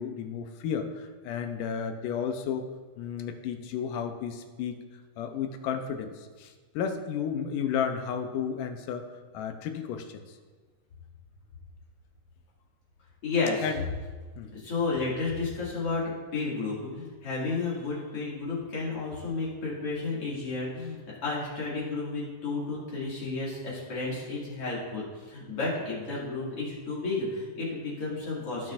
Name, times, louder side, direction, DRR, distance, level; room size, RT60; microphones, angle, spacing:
voice 1, 0.0-2.7 3.0-4.8 5.2-9.0 9.3-10.4 13.6-13.8 14.4-14.5, left 7 dB, 90° left, 6 dB, 2.3 m, -33 dB
voice 2, 13.2-13.7 14.5-16.0 16.3-28.7, left 3 dB, 45° left, -7 dB, 3.1 m, -32 dB
17.5 x 6.1 x 2.6 m, 1.4 s
omnidirectional pair, 3.8 m